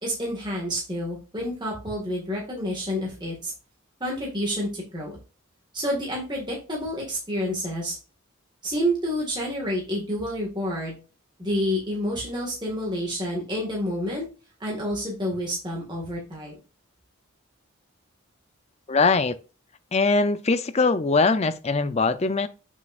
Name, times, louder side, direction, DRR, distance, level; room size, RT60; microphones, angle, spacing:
voice 1, 0.0-3.5 4.0-5.2 5.7-8.0 8.6-11.0 11.4-14.3 14.6-16.5, equal, 20° right, 1.8 m, -29 dB
voice 2, 18.9-19.3 19.9-22.5, left 3 dB, 30° left, 0.5 m, -21 dB
8.0 x 6.0 x 2.5 m
head